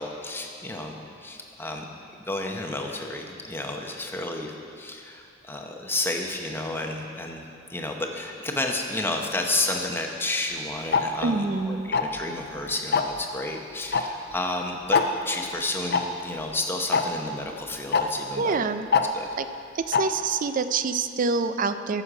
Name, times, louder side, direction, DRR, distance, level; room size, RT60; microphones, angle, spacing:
voice 1, 0.0-1.8 2.2-15.0 15.3-19.3, left 2 dB, 10° left, 2 dB, 0.8 m, -31 dB
Tick-tock, 10.9-11.0 11.9-12.2 12.9-13.2 13.9-14.0 14.3-14.4 14.9-15.0 15.9-16.0 16.9-17.0 17.9-18.0 18.9-19.0 19.9-20.0, left 6 dB, 55° left, 0.5 m, -21 dB
voice 2, 11.2-11.9 18.4-18.9 19.4-19.5 19.7-22.0, right 4 dB, 45° right, 11 dB, 0.4 m, -26 dB
13.5 x 6.4 x 5.0 m, 2.6 s
head